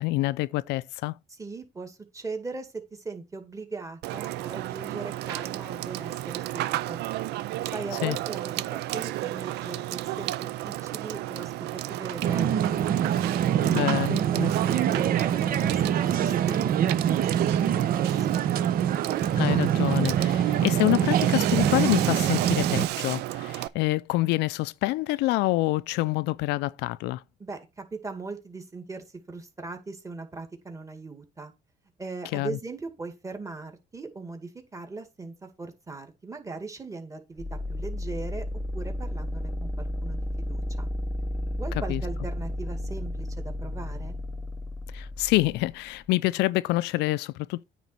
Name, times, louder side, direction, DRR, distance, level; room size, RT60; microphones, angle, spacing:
voice 1, 0.0-1.1 8.0-8.2 13.6-14.5 19.3-27.2 32.3-32.6 41.9-42.0 44.9-47.6, left 19 dB, 85° left, 0.4 m, -27 dB
voice 2, 1.3-2.7 3.0-7.0 7.7-8.6 8.9-11.5 11.9-12.6 13.0-13.1 13.7-18.6 27.4-31.5 32.0-38.4 38.7-40.9 41.6-44.2, right 3 dB, 20° right, 2.2 m, -39 dB
Water / Water tap faucet / Sink (filling or washing), 4.0-23.7, right 15 dB, 80° right, 0.5 m, -33 dB
sound 1, 12.2-22.9, right 9 dB, 60° right, 0.9 m, -24 dB
sound 2, 37.4-46.1, left 1 dB, 5° left, 0.5 m, -33 dB
9.3 x 3.9 x 6.0 m
cardioid pair, 110°, 17 cm